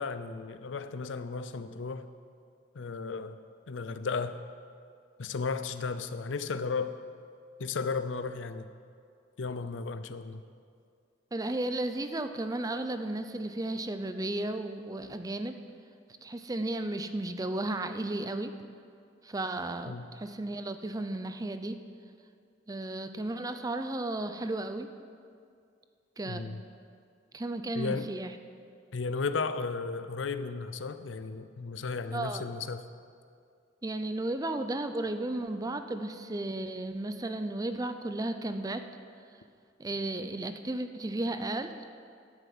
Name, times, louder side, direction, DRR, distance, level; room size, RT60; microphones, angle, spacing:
voice 1, 0.0-2.1 2.7-3.4 3.7-4.4 5.2-7.0 7.6-8.7 9.4-10.4 19.9-20.1 26.3-26.6 27.8-28.1 28.9-32.8, left 4 dB, 80° left, 11 dB, 0.6 m, -34 dB
voice 2, 11.3-15.6 16.2-18.5 19.2-21.8 22.7-24.9 26.2-26.5 27.3-28.4 32.1-32.4 33.8-38.9 39.8-41.7, right 2 dB, 20° right, 9 dB, 0.5 m, -34 dB
12.5 x 6.8 x 7.6 m, 2.3 s
head